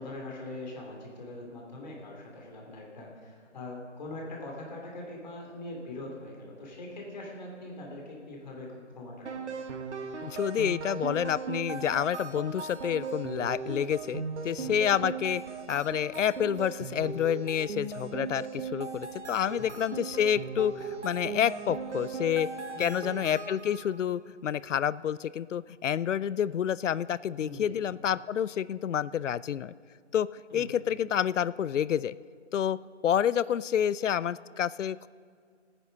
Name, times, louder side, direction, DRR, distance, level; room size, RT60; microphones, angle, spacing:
voice 1, 0.0-9.5 14.6-14.8 19.5-19.8 22.7-23.3 27.4-27.7 30.5-30.8, left 2 dB, 35° left, -1 dB, 3.1 m, -42 dB
sound 1, 9.3-24.0, right 5 dB, 70° right, 1.5 m, -38 dB
voice 2, 10.2-15.4 15.7-22.5 22.8-29.7 30.1-30.3 30.5-32.2 32.5-32.8 33.0-35.1, left 9 dB, 80° left, 19 dB, 0.5 m, -29 dB
17.0 x 9.8 x 5.4 m, 2.1 s
hypercardioid pair, 170°, 36 cm